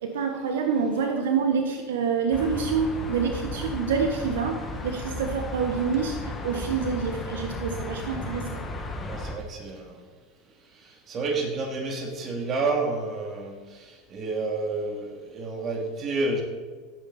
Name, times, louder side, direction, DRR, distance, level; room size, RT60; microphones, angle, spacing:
voice 1, 0.0-4.6 4.8-6.2 6.4-8.6, right 5 dB, 80° right, 4 dB, 1.3 m, -27 dB
sound 1, 2.3-9.3, left 1 dB, 20° left, 2.2 m, -34 dB
voice 2, 9.0-9.9 11.1-16.4, right 3 dB, 40° right, 2 dB, 3.0 m, -30 dB
16.0 x 8.9 x 4.3 m, 1.4 s
hypercardioid pair, 90°, 0 cm